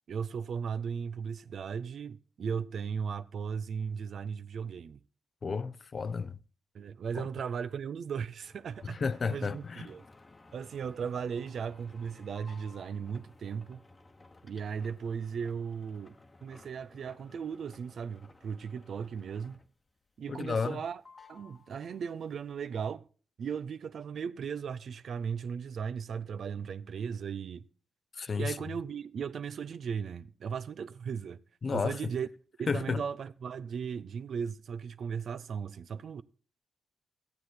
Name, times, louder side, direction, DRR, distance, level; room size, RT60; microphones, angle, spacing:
voice 1, 0.1-5.0 6.7-9.0 9.3-10.0 10.5-13.8 14.4-16.1 16.4-19.6 20.2-21.0 21.3-23.0 23.4-27.6 28.3-31.4 31.7-32.3 32.6-36.2, right 6 dB, 65° right, 0.5 m, -37 dB
voice 2, 5.4-6.4 7.2-7.3 8.9-9.9 20.3-20.8 28.2-28.6 31.6-32.0 32.7-33.0, left 5 dB, 50° left, 0.5 m, -32 dB
sound 1, 8.4-19.9 20.2-20.8 21.0-22.3, left 3 dB, 30° left, 1.1 m, -57 dB
13.5 x 7.8 x 4.4 m
supercardioid pair, 45°, 0 cm